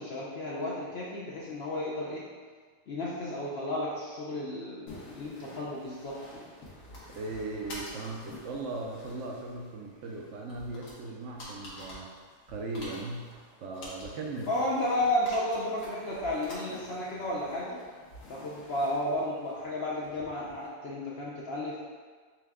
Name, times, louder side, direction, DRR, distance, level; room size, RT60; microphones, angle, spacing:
voice 1, 0.0-2.3 2.9-6.5 14.5-17.8 18.3-21.8, left 1 dB, 65° left, -5 dB, 0.6 m, -33 dB
sound 1, 4.9-20.7, left 1 dB, 85° left, 1.7 m, -48 dB
voice 2, 7.2-12.1 12.5-14.5, right 2 dB, 65° right, -1 dB, 0.7 m, -38 dB
5.9 x 2.2 x 3.5 m, 1.6 s
omnidirectional pair, 1.7 m